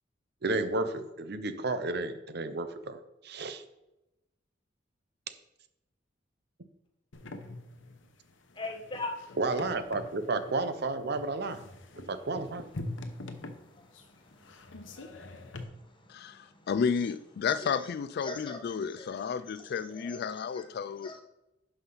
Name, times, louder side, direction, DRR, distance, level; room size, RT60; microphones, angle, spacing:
voice 1, 0.4-3.6 9.4-11.6 12.0-12.7, right 3 dB, 60° right, 10 dB, 0.8 m, -32 dB
sound 1, 7.1-15.6, left 2 dB, 75° left, 0.9 m, -44 dB
voice 2, 8.6-9.1 17.5-17.8 18.2-18.6 19.0-19.1 19.6-20.2 20.5-20.6 21.0-21.2, left 2 dB, 25° left, 3 dB, 1.2 m, -39 dB
voice 3, 16.1-21.1, left 6 dB, 55° left, 14 dB, 0.3 m, -32 dB
11.5 x 5.6 x 4.0 m, 0.94 s
head